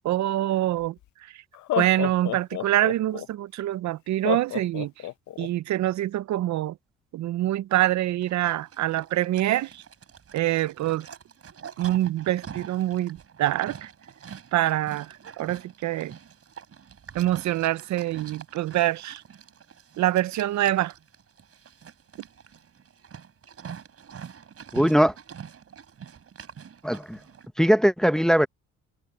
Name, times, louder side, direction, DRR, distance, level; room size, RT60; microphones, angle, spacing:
voice 1, 0.0-1.4 1.7-5.1 5.4-6.8 7.1-9.8 10.3-11.1 11.8-13.9 14.5-16.1 17.1-19.2 20.0-20.9, right 14 dB, 70° right, 0.6 m, -25 dB
Laughter, 0.8-0.9 1.5-3.3 4.2-5.5, left 13 dB, 70° left, 0.8 m, -30 dB
Livestock farm animals working animals, 8.2-27.5, right 7 dB, 50° right, 4.5 m, -45 dB
voice 2, 24.7-25.1 26.8-27.2 27.6-28.5, equal, ahead, 0.7 m, -20 dB
cardioid pair, 90°, 30 cm